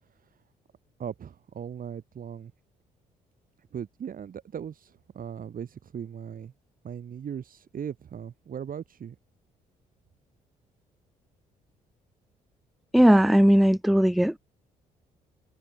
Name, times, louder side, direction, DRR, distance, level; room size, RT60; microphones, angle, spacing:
voice 1, 0.1-0.4 1.0-2.5 3.7-6.5 6.8-9.2, right 8 dB, 55° right, 5.4 m, -38 dB
voice 2, 12.9-14.4, equal, ahead, 0.3 m, -18 dB
hypercardioid pair, 55°, 17 cm